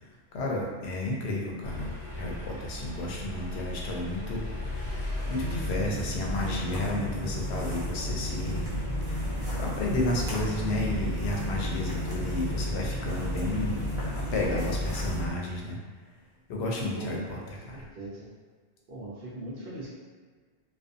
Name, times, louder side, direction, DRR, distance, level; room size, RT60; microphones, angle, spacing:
voice 1, 0.3-5.0 5.3-8.6 9.1-13.8 14.2-15.8 16.5-17.8, left 2 dB, 80° left, -2 dB, 0.8 m, -32 dB
sound 1, 1.6-15.3, equal, 45° left, 0.8 m, -33 dB
sound 2, 4.7-15.2, equal, 5° right, 0.5 m, -41 dB
voice 2, 16.9-17.3 17.7-18.3 18.9-19.9, right 2 dB, 65° right, -8 dB, 0.8 m, -40 dB
2.5 x 2.3 x 2.5 m, 1.5 s
omnidirectional pair, 1.1 m